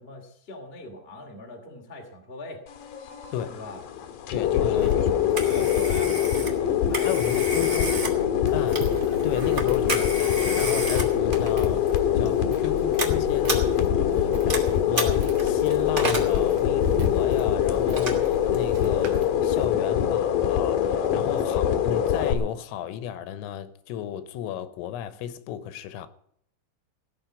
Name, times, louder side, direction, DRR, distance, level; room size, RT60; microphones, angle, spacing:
voice 1, 0.0-2.6 3.5-3.8 4.4-5.0 5.4-8.5 14.0-14.7 21.0-21.3, left 2 dB, 35° left, 0.9 m, -41 dB
sound 1, 2.7-22.3, left 10 dB, 65° left, 2.3 m, -24 dB
voice 2, 4.3-5.7 7.1-8.0 8.5-14.2 14.5-14.6 14.9-26.1, left 10 dB, 85° left, 3.5 m, -34 dB
Telephone, 4.8-19.0, right 1 dB, 30° right, 1.2 m, -33 dB
Walk footsteps, 8.5-19.7, right 3 dB, 70° right, 4.2 m, -42 dB
18.0 x 6.6 x 9.1 m
omnidirectional pair, 5.8 m